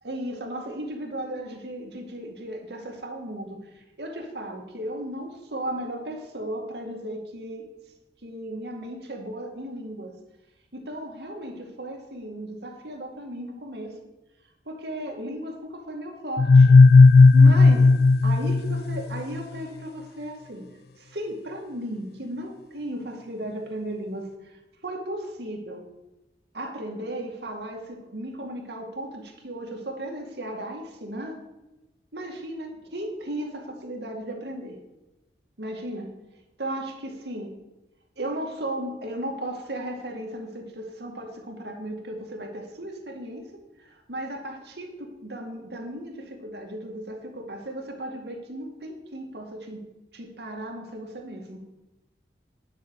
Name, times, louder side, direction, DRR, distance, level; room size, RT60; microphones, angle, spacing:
voice 1, 0.0-7.7 8.2-10.1 10.7-13.9 14.7-16.8 17.3-17.9 18.2-20.6 21.0-25.8 26.5-31.4 32.1-34.8 35.6-36.1 36.6-37.5 38.2-43.5 43.8-49.9 50.1-51.6, right 1 dB, 70° right, 2 dB, 2.2 m, -35 dB
sound 1, 16.4-19.2, left 3 dB, 60° left, 0.4 m, -13 dB
10.5 x 6.5 x 8.2 m, 1.0 s
head